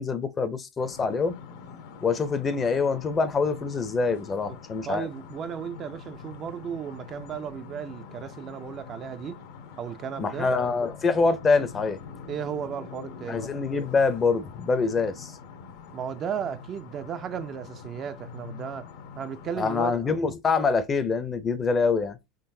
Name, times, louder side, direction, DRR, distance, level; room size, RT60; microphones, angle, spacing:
voice 1, 0.0-1.4 2.0-5.1 10.2-12.0 13.3-15.3 19.6-22.2, left 4 dB, 25° left, 0.5 m, -25 dB
sound 1, 0.8-19.6, left 6 dB, 70° left, 0.8 m, -44 dB
voice 2, 4.8-9.4 9.8-10.5 12.3-13.5 15.9-18.9 19.2-20.2, right 8 dB, 35° right, 0.3 m, -35 dB
4.0 x 3.8 x 2.6 m
supercardioid pair, 120°, 0 cm